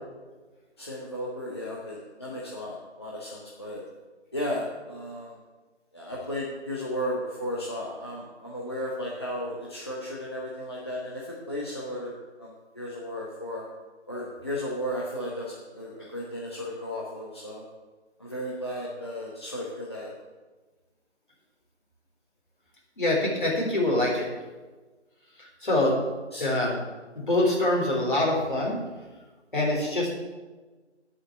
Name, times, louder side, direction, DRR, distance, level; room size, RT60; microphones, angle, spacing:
voice 1, 0.8-3.8 4.3-5.3 5.9-12.1 12.4-12.5 12.7-13.6 14.1-17.6 18.2-20.1 26.3-26.5, equal, 20° left, -5 dB, 1.1 m, -34 dB
voice 2, 23.0-24.3 25.6-25.9 26.4-26.8 27.2-28.7 29.5-30.1, left 1 dB, 45° left, -2 dB, 3.7 m, -24 dB
8.7 x 7.0 x 8.7 m, 1.3 s
figure-of-eight pair, 165°, 35 cm